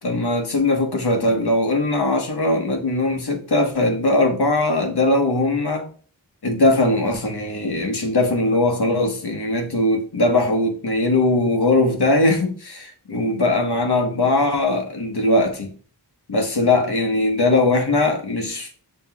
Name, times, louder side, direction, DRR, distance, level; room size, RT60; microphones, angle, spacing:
voice 1, 0.0-5.9 6.4-15.7 16.3-18.8, left 2 dB, 65° left, 1.1 m, -20 dB
7.5 x 3.2 x 2.3 m
wide cardioid pair, 45°, 42 cm